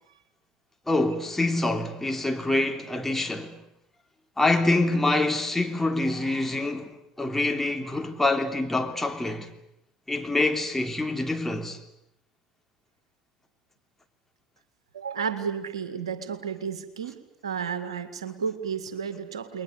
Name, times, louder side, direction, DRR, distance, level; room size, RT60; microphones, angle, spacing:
voice 1, 0.9-3.5 4.4-9.5 10.1-11.8, left 2 dB, 10° left, 3.3 m, -26 dB
voice 2, 14.9-19.6, right 6 dB, 80° right, 2.0 m, -32 dB
29.5 x 22.0 x 8.4 m
figure-of-eight pair, 65°, 3 cm